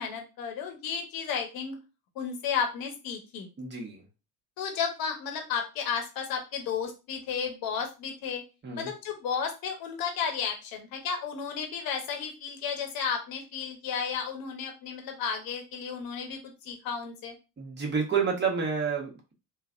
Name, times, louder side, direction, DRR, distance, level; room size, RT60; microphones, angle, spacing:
voice 1, 0.0-1.8 2.2-3.5 4.6-8.4 8.8-17.3, left 6 dB, 55° left, 4 dB, 1.1 m, -33 dB
voice 2, 3.6-4.0 8.6-8.9 17.6-19.3, right 6 dB, 25° right, 0 dB, 1.3 m, -29 dB
3.1 x 2.3 x 2.5 m, 0.29 s
hypercardioid pair, 70°, 43 cm